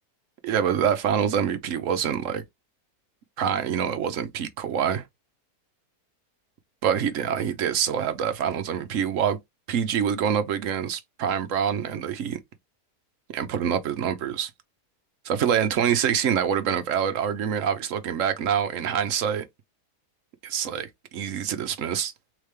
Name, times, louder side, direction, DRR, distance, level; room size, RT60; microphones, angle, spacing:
voice 1, 0.4-2.4 3.4-5.0 6.8-9.4 9.7-12.4 13.3-14.5 15.2-19.4 20.4-22.1, right 8 dB, 60° right, 1.0 m, -26 dB
3.7 x 3.3 x 3.2 m
omnidirectional pair, 1.7 m